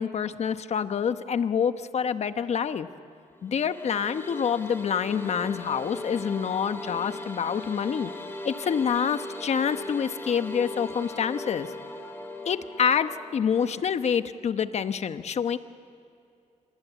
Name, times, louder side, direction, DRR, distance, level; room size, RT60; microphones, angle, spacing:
voice 1, 0.0-2.9 3.4-8.1 8.4-11.7 12.4-15.6, left 7 dB, 55° left, 11 dB, 1.0 m, -27 dB
sound 1, 3.5-13.6, left 2 dB, 15° left, 3.3 m, -38 dB
27.0 x 20.5 x 8.2 m, 2.6 s
cardioid pair, 105°, 13 cm